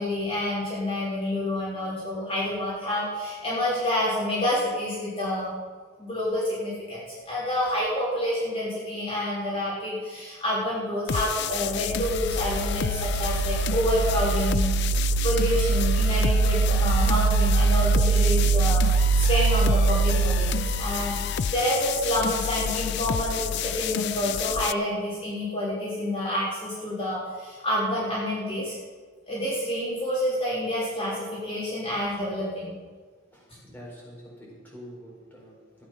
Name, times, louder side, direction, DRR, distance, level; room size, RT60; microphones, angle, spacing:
voice 1, 0.0-5.6 6.0-14.7 15.0-28.8 29.3-32.8, left 1 dB, 25° left, -9 dB, 3.9 m, -28 dB
sound 1, 11.1-24.7, left 7 dB, 50° left, 0.4 m, -29 dB
sound 2, 12.0-21.1, right 5 dB, 90° right, 0.4 m, -23 dB
voice 2, 33.3-35.8, equal, 10° left, -6 dB, 4.7 m, -46 dB
14.5 x 10.5 x 5.8 m, 1.5 s
head